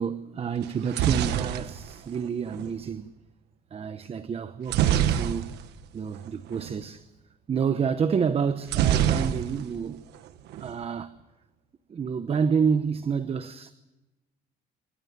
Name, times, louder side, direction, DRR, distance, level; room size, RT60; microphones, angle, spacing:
voice 1, 0.0-3.1 3.7-5.6 5.9-7.1 7.5-10.0 10.6-11.2 11.9-13.7, right 6 dB, 35° right, 0.9 m, -28 dB
sound 1, 0.6-2.7 4.7-5.8 6.1-6.3 6.5-6.8 8.7-9.8 10.1-10.8, right 11 dB, 80° right, 1.4 m, -25 dB
28.0 x 15.0 x 9.5 m
cardioid pair, 110°, 17 cm